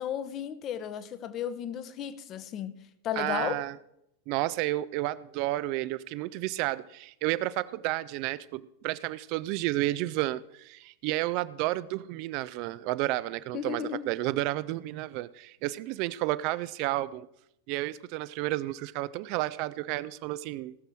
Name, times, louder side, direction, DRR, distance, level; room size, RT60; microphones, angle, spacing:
voice 1, 0.0-2.7 3.0-3.6 13.5-14.0, left 9 dB, 35° left, 0.8 m, -34 dB
voice 2, 3.2-3.8 4.3-17.3 17.7-20.8, right 17 dB, 45° right, 0.3 m, -31 dB
18.0 x 6.7 x 4.6 m
figure-of-eight pair, 90°, 0 cm